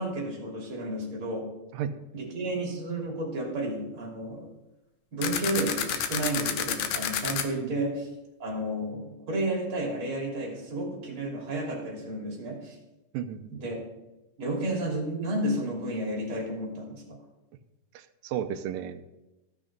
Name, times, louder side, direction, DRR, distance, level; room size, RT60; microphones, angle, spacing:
voice 1, 0.0-1.5 2.1-4.5 5.1-8.1 8.4-12.8 13.5-13.8 14.4-17.2, right 1 dB, 40° right, -1 dB, 3.5 m, -32 dB
sound 1, 5.2-7.4, left 8 dB, 70° left, 2.1 m, -29 dB
voice 2, 13.1-13.6 17.9-19.0, right 9 dB, 80° right, 8 dB, 2.4 m, -33 dB
15.5 x 6.2 x 5.3 m, 0.98 s
omnidirectional pair, 4.1 m